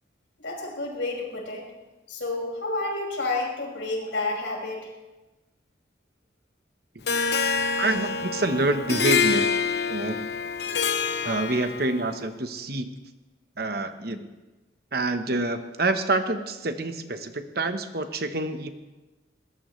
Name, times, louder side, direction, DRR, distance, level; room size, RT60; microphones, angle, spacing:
voice 1, 0.4-1.7 2.1-4.9, left 2 dB, 85° left, -2 dB, 6.0 m, -30 dB
Harp, 7.1-12.1, left 5 dB, 60° left, 0.9 m, -26 dB
voice 2, 7.8-9.5 9.9-10.3 11.2-13.0 13.6-14.3 14.9-18.7, right 2 dB, 55° right, 8 dB, 1.1 m, -27 dB
21.5 x 19.0 x 3.2 m, 1.1 s
head